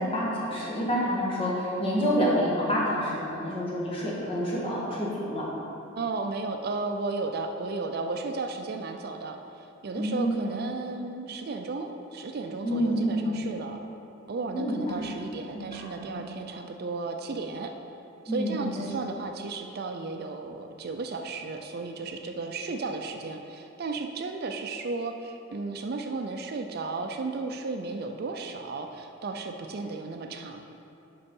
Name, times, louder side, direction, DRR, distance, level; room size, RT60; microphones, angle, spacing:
voice 1, 0.0-5.5 10.0-10.5 12.6-13.3 14.5-15.1 15.5-16.2 18.3-18.9, equal, 25° left, -5 dB, 1.6 m, -28 dB
voice 2, 6.0-13.8 14.3-17.7 18.2-30.6, right 3 dB, 50° right, 4 dB, 0.4 m, -34 dB
6.8 x 5.4 x 5.3 m, 2.8 s
head